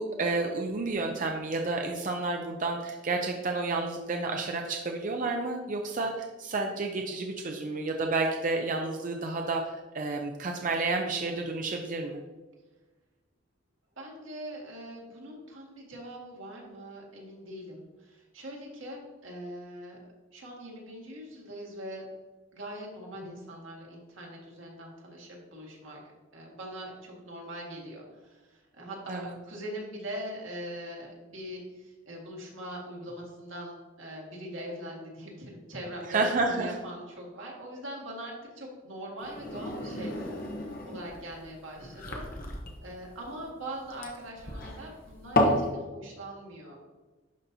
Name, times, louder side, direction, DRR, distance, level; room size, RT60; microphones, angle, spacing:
voice 1, 0.0-12.2 29.1-29.3 36.1-36.8, right 3 dB, 40° right, 2 dB, 0.5 m, -30 dB
voice 2, 14.0-20.0 20.3-22.0 22.5-26.0 26.3-42.3 42.8-46.9, equal, 85° right, -3 dB, 2.0 m, -42 dB
sound 1, 39.2-45.7, left 1 dB, 45° left, 1.1 m, -32 dB
11.0 x 4.0 x 2.8 m, 1.2 s
head